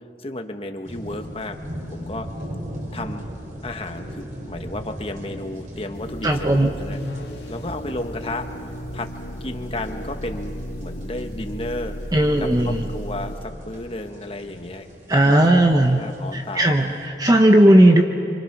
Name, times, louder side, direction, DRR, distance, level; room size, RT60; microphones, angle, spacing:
voice 1, 0.2-1.6 1.9-2.3 2.9-3.3 3.6-7.0 7.5-8.5 8.9-9.1 9.4-12.0 12.4-14.9 15.2-16.7, left 1 dB, 30° left, 6 dB, 1.3 m, -33 dB
sound 1, 0.8-17.1, equal, 45° right, 4.1 m, -39 dB
sound 2, 5.9-14.6, equal, 70° left, 2.8 m, -35 dB
voice 2, 6.2-6.7 12.1-12.8 15.1-16.0 16.3-18.0, right 1 dB, 20° right, 3 dB, 0.9 m, -16 dB
27.0 x 26.0 x 6.1 m, 2.7 s
head